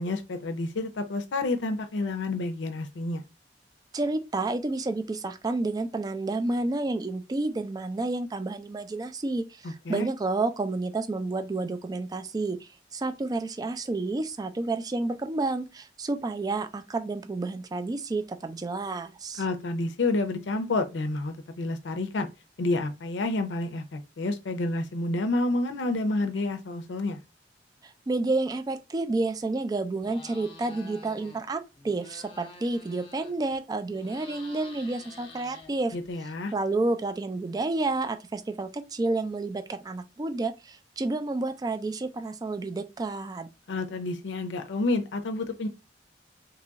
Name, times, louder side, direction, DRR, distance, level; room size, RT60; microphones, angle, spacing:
voice 1, 0.0-3.2 9.9-10.1 19.4-22.3 22.6-27.2 35.9-36.5 43.7-45.7, left 2 dB, 85° left, 0.5 m, -29 dB
voice 2, 3.9-19.4 27.8-36.0 36.5-43.5, right 2 dB, 20° right, 0.3 m, -30 dB
sound 1, 30.0-31.4 31.7-33.5 33.9-36.1, left 3 dB, 30° left, 0.8 m, -48 dB
2.9 x 2.3 x 3.9 m
head